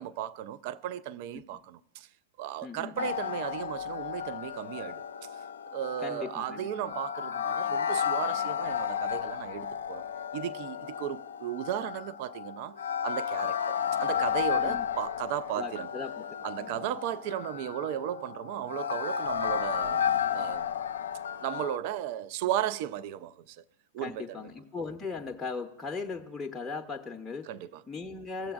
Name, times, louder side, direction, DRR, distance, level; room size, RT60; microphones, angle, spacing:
voice 1, 0.0-2.1 2.4-5.0 5.3-5.4 5.7-10.0 10.3-15.9 16.4-20.0 20.3-20.7 21.4-23.6 23.9-24.3 27.5-27.8, right 11 dB, 50° right, 0.4 m, -35 dB
voice 2, 2.6-3.1 6.0-7.0 14.5-14.9 15.6-16.2 16.6-16.9 24.0-27.5 27.9-28.5, left 4 dB, 10° left, 0.6 m, -38 dB
sound 1, 3.0-21.8, left 8 dB, 75° left, 0.4 m, -33 dB
16.5 x 7.6 x 2.4 m
figure-of-eight pair, 100°, 0 cm